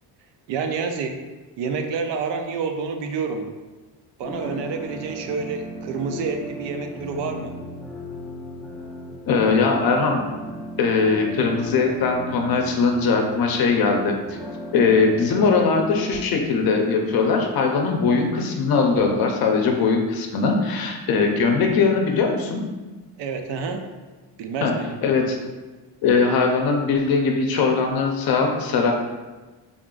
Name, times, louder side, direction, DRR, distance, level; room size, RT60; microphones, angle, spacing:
voice 1, 0.5-1.2 1.6-3.5 4.2-7.5 23.2-23.9 24.4-24.9, right 5 dB, 75° right, 4 dB, 0.6 m, -28 dB
sound 1, 4.2-16.2, equal, 5° left, 0.4 m, -36 dB
voice 2, 9.3-10.2 10.8-14.2 14.7-22.6 24.6-24.7 25.0-25.4 26.0-28.9, left 4 dB, 55° left, 3 dB, 0.6 m, -20 dB
3.6 x 2.4 x 3.7 m, 1.2 s
cardioid pair, 155°, 43 cm